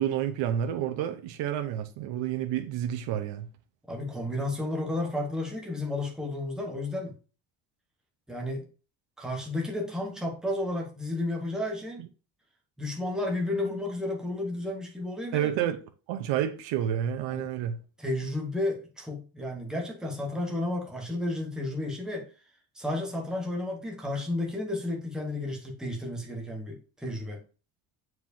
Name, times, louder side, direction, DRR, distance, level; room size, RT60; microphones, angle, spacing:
voice 1, 0.0-3.5 12.0-12.1 15.3-15.8 16.1-17.8, right 10 dB, 80° right, 0.8 m, -29 dB
voice 2, 3.9-7.1 8.3-8.7 9.2-12.0 12.8-15.5 17.3-17.5 18.0-22.3 22.7-27.4, left 1 dB, ahead, 1.1 m, -32 dB
7.5 x 4.6 x 2.7 m
cardioid pair, 180°, 43 cm